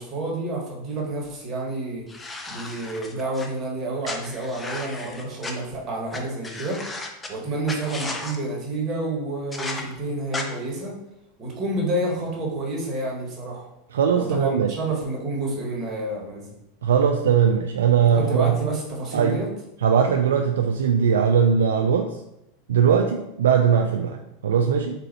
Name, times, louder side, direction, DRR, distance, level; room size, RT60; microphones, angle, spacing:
voice 1, 0.0-2.0 2.5-6.8 7.3-11.0 11.4-13.6 14.1-16.5 18.0-19.5, right 2 dB, 40° right, -1 dB, 1.4 m, -29 dB
sound 1, 2.1-3.5 4.0-5.5 6.1-6.2 6.4-7.3 7.7-8.4 9.5-9.8 10.3-10.4, left 2 dB, 15° left, 0.6 m, -34 dB
voice 2, 13.9-14.8 16.8-18.6 19.1-19.4 19.8-22.2 22.7-25.0, right 7 dB, 85° right, 4 dB, 0.3 m, -20 dB
4.0 x 2.7 x 4.0 m, 0.85 s
hypercardioid pair, 105°, 0 cm